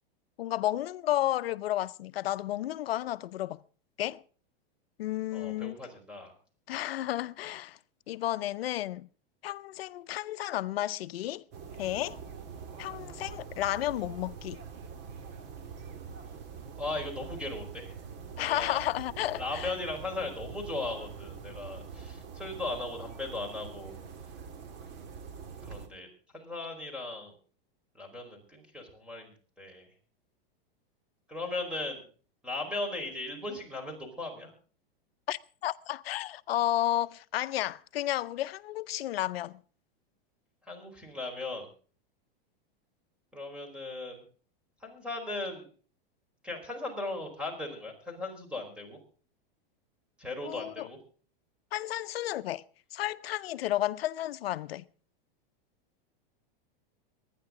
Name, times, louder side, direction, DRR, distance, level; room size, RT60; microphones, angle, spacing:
voice 1, 0.4-3.6 4.0-4.2 5.0-5.7 6.7-7.8 8.1-9.1 9.4-11.4 11.8-12.2 12.8-14.6 18.4-19.7 35.3-39.6 50.4-50.9 51.7-52.6 52.9-54.8, left 14 dB, 90° left, 0.6 m, -32 dB
voice 2, 5.3-6.3 16.8-17.9 18.4-18.8 19.4-24.0 25.6-26.1 26.3-27.3 27.9-29.3 29.6-29.9 31.3-32.0 32.4-34.5 40.7-41.7 43.3-44.2 44.8-45.6 46.4-49.0 50.2-51.0, left 2 dB, 5° right, 4.6 m, -37 dB
sound 1, 11.5-25.9, right 6 dB, 35° right, 2.1 m, -44 dB
24.0 x 10.0 x 3.8 m
supercardioid pair, 140°, 29 cm